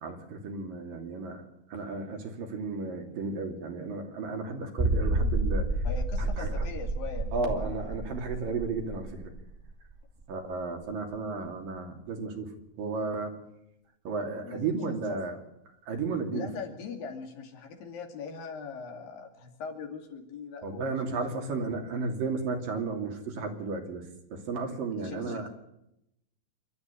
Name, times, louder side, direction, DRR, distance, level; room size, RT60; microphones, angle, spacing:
voice 1, 0.0-5.7 6.2-6.7 7.3-9.3 10.3-13.3 14.0-15.4 15.9-16.5 20.6-25.5, right 4 dB, 65° right, 3 dB, 4.4 m, -34 dB
sound 1, 4.8-10.2 10.5-10.6 11.1-11.2, right 1 dB, 15° right, 1.7 m, -30 dB
voice 2, 5.8-8.0 14.4-14.8 15.1-15.2 16.3-21.5 24.9-25.5, left 5 dB, 65° left, 3 dB, 4.2 m, -41 dB
27.0 x 13.0 x 8.4 m, 0.83 s
omnidirectional pair, 4.4 m